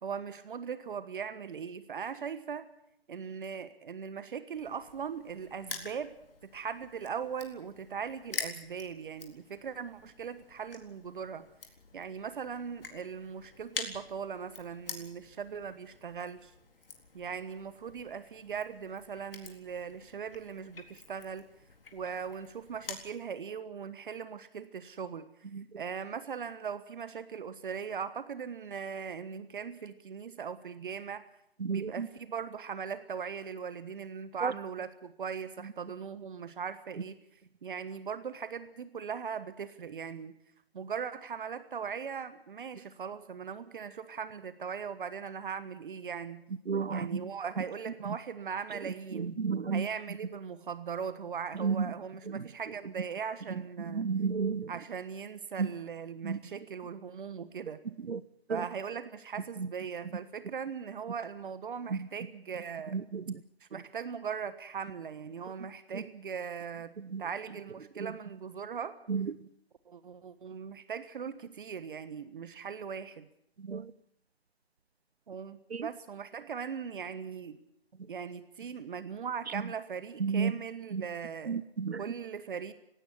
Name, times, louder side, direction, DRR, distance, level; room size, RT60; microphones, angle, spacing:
voice 1, 0.0-2.7 3.1-6.2 6.4-11.4 11.9-16.5 17.1-21.4 21.9-25.2 25.8-31.3 31.7-37.2 37.6-40.4 40.7-46.4 46.9-49.4 49.7-54.0 54.7-57.8 58.5-63.0 63.6-68.9 69.9-73.3 75.3-77.6 78.1-81.6 82.0-82.7, right 6 dB, 55° right, 1.4 m, -39 dB
Crushing, 4.5-23.1, left 4 dB, 65° left, 3.9 m, -47 dB
voice 2, 31.6-32.1 34.4-34.5 46.7-47.3 48.1-48.2 49.2-49.9 51.6-51.9 53.9-54.7 55.6-55.7 56.2-56.4 58.1-58.2 58.5-58.6 61.9-62.0 62.9-63.2 65.9-66.0 67.1-67.2 69.1-69.3 73.7-73.9 75.7-75.9 80.2-80.5 80.9-81.0 81.5-82.0, right 5 dB, 85° right, 0.8 m, -31 dB
19.0 x 16.5 x 9.5 m
figure-of-eight pair, 135°, 31 cm